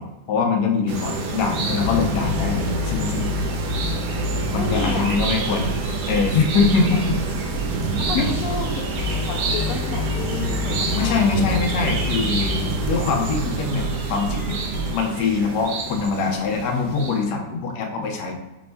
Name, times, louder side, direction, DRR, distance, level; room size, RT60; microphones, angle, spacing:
voice 1, 0.0-3.3 4.5-5.7 6.1-7.1 8.1-8.3 11.0-14.6 14.9-18.3, left 4 dB, 85° left, 2 dB, 1.3 m, -23 dB
sound 1, 0.9-17.2, right 3 dB, 80° right, 1.2 m, -28 dB
sound 2, 1.8-14.9, left 1 dB, 50° left, 1.4 m, -28 dB
voice 2, 4.5-5.2 6.8-7.0 8.0-8.8 9.3-11.6, left 4 dB, 70° left, 1 dB, 1.0 m, -31 dB
5.2 x 3.4 x 2.2 m, 1.1 s
omnidirectional pair, 1.7 m